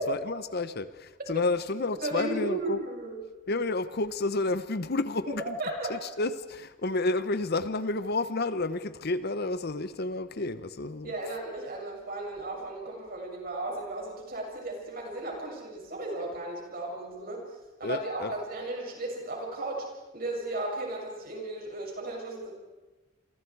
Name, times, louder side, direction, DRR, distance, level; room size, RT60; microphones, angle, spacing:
voice 1, 0.1-2.8 3.5-5.6 5.9-11.1 17.8-18.3, left 2 dB, 50° left, 12 dB, 0.9 m, -30 dB
voice 2, 2.0-3.2 5.3-5.9 11.0-17.4 17.8-19.9 20.1-22.5, right 2 dB, 45° right, 0 dB, 6.8 m, -35 dB
29.0 x 24.5 x 4.7 m, 1.2 s
head